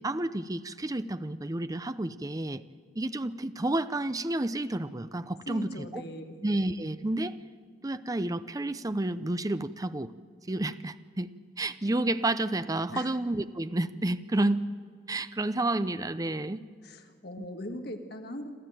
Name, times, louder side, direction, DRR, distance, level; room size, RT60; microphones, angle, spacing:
voice 1, 0.0-2.6 3.0-6.0 6.4-7.4 7.8-10.1 10.5-11.3 11.6-14.6 15.1-16.6 17.4-17.5, right 2 dB, 20° right, 13 dB, 0.6 m, -30 dB
voice 2, 5.5-6.4 12.9-13.1 16.8-18.5, equal, 60° left, 5 dB, 2.0 m, -40 dB
27.0 x 13.5 x 9.1 m, 2.1 s
head